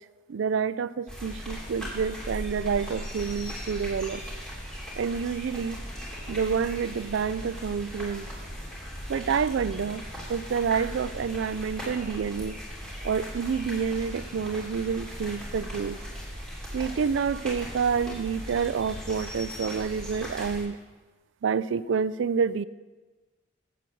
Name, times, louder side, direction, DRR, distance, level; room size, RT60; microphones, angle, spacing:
voice 1, 0.3-4.2 5.0-5.8 6.3-8.3 9.1-10.0 10.3-12.6 13.0-16.0 16.7-20.8 21.4-22.6, right 6 dB, 75° right, 17 dB, 0.4 m, -28 dB
sound 1, 1.1-20.6, equal, 5° left, 3.1 m, -38 dB
8.4 x 7.9 x 7.7 m, 1.3 s
head